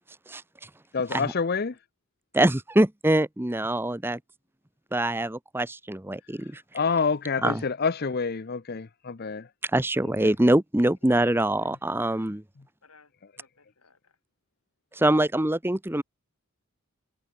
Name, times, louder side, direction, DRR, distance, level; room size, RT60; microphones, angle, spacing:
voice 1, 0.9-1.8 6.7-9.5 10.2-10.3, left 5 dB, 45° left, 0.6 m, -27 dB
voice 2, 2.3-4.2 4.9-6.6 7.4-7.6 9.7-12.4 15.0-16.0, right 1 dB, 10° right, 0.8 m, -24 dB
voice 3, 11.0-12.4 12.8-13.1 13.4-14.1, left 3 dB, 85° left, 5.9 m, -56 dB
head